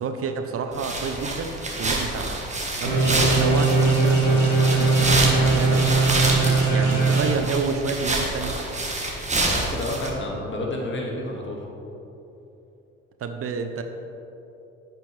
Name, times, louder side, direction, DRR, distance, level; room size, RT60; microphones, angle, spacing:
voice 1, 0.0-2.4 2.8-5.9 6.3-8.6 13.2-13.8, right 5 dB, 40° right, 7 dB, 0.8 m, -29 dB
sound 1, 0.7-10.1, right 2 dB, 20° right, 1.8 m, -27 dB
voice 2, 2.8-3.2 9.3-11.7, left 1 dB, 30° left, -1 dB, 2.2 m, -31 dB
sound 2, 2.9-7.2, right 3 dB, 90° right, 1.3 m, -20 dB
11.5 x 8.8 x 3.5 m, 3.0 s
figure-of-eight pair, 50°, 37 cm